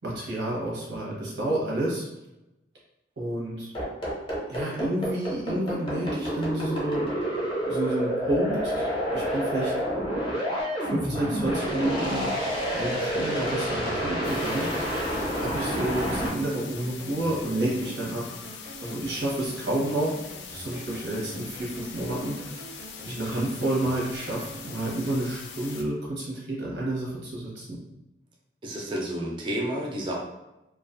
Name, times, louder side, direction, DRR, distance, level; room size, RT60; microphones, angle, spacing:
voice 1, 0.0-2.1 3.2-3.7 4.5-7.1 7.6-9.7 10.8-12.3 12.7-14.7 15.3-18.2 18.8-20.1 20.5-22.5 23.0-27.8, right 1 dB, 85° right, -4 dB, 0.9 m, -30 dB
sound 1, 3.7-16.3, equal, 30° left, 0.5 m, -28 dB
sound 2, 12.0-25.3, right 2 dB, 65° right, 0.6 m, -46 dB
sound 3, 14.2-25.8, left 6 dB, 80° left, 0.3 m, -42 dB
voice 2, 28.6-30.2, right 1 dB, 25° right, -2 dB, 0.4 m, -30 dB
2.3 x 2.3 x 2.4 m, 0.94 s
head